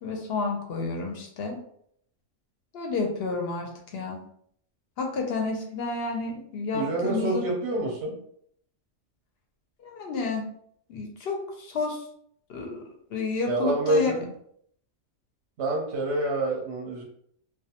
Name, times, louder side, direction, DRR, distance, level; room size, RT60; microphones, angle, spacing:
voice 1, 0.0-1.6 2.7-4.2 5.0-7.5 9.8-10.5 10.9-12.0 12.5-14.1, left 4 dB, 60° left, 1 dB, 0.7 m, -30 dB
voice 2, 6.7-8.2 13.5-14.3 15.6-17.0, right 2 dB, 65° right, 0 dB, 0.7 m, -27 dB
2.3 x 2.2 x 2.8 m, 0.67 s
omnidirectional pair, 1.4 m